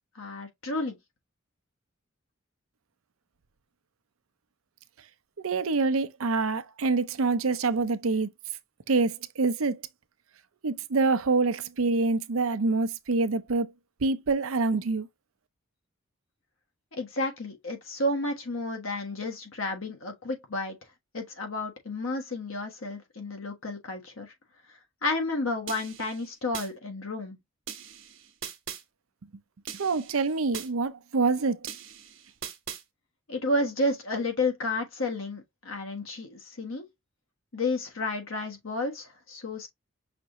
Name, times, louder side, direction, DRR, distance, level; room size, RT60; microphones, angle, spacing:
voice 1, 0.1-1.0 16.9-20.8 21.1-24.3 25.0-27.4 33.3-36.9 37.5-39.7, left 2 dB, 75° left, 1.4 m, -31 dB
voice 2, 5.4-8.3 8.9-9.8 10.6-13.7 14.0-15.1 29.8-31.6, right 3 dB, 80° right, 0.6 m, -26 dB
sound 1, 25.7-26.7 27.7-28.8 29.7-30.7 31.7-32.8, right 9 dB, 65° right, 1.2 m, -40 dB
5.9 x 2.6 x 3.0 m
head